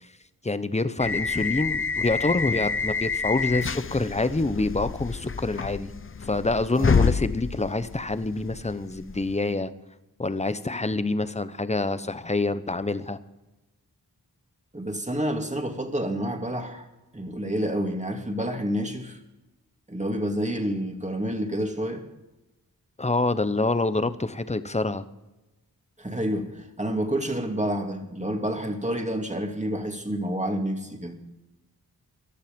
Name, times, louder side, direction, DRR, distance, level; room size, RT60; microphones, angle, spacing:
voice 1, 0.4-5.9 6.2-9.7 10.2-13.2 23.0-25.0, left 2 dB, 15° left, 13 dB, 0.9 m, -26 dB
sound 1, 1.0-9.4, left 5 dB, 35° left, 0.6 m, -28 dB
voice 2, 6.8-7.1 14.7-16.9 17.1-19.2 19.9-22.0 26.0-31.2, equal, 20° right, 4 dB, 2.4 m, -29 dB
15.0 x 11.5 x 5.3 m, 1.0 s
cardioid pair, 45°, 39 cm